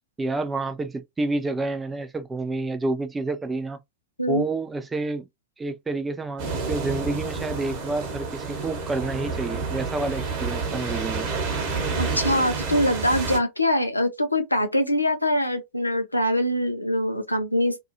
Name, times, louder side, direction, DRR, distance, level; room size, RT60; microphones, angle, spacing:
voice 1, 0.2-3.8 4.3-5.3 5.6-11.3, right 2 dB, 15° right, 0.4 m, -29 dB
sound 1, 6.4-13.4, right 4 dB, 45° right, 1.1 m, -29 dB
voice 2, 12.0-17.8, left 1 dB, 85° left, 0.5 m, -23 dB
2.7 x 2.3 x 2.6 m
figure-of-eight pair, 90°, 0 cm